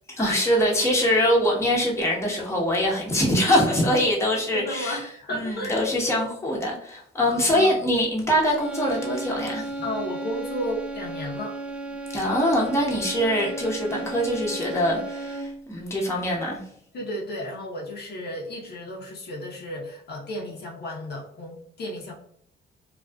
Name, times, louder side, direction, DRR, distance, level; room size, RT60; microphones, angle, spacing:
voice 1, 0.2-5.0 5.3-9.7 12.1-16.6, equal, 15° left, -3 dB, 0.8 m, -23 dB
voice 2, 4.5-5.8 7.3-7.7 9.8-11.6 16.9-22.1, left 1 dB, 55° left, -2 dB, 0.7 m, -33 dB
sound 1, 8.5-15.7, right 2 dB, 5° right, 0.4 m, -34 dB
2.4 x 2.3 x 2.2 m, 0.66 s
cardioid pair, 90°, 20 cm